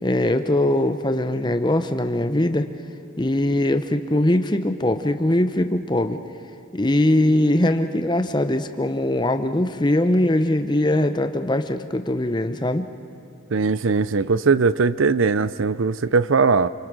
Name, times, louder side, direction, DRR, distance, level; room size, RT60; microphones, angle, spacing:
voice 1, 0.0-2.7 3.2-6.2 6.7-12.9, left 1 dB, 20° left, 9 dB, 0.8 m, -21 dB
voice 2, 13.5-16.7, right 4 dB, 75° right, 16 dB, 0.6 m, -20 dB
28.0 x 25.5 x 6.2 m, 2.8 s
head